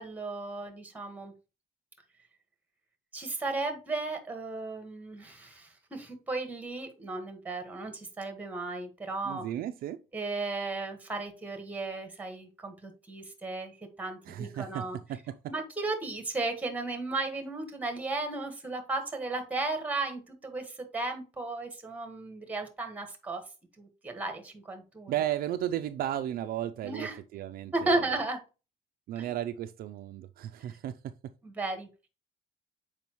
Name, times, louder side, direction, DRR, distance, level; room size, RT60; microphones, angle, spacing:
voice 1, 0.0-1.3 3.1-9.4 10.1-15.0 15.5-23.4 23.8-25.1 26.8-27.2 27.7-28.4 29.2-29.3 30.6-30.7 31.4-31.9, right 3 dB, 10° right, 1.4 m, -35 dB
voice 2, 9.2-10.0 14.3-15.5 25.1-28.1 29.1-31.3, right 12 dB, 60° right, 0.4 m, -35 dB
7.0 x 4.9 x 3.0 m
cardioid pair, 155°, 17 cm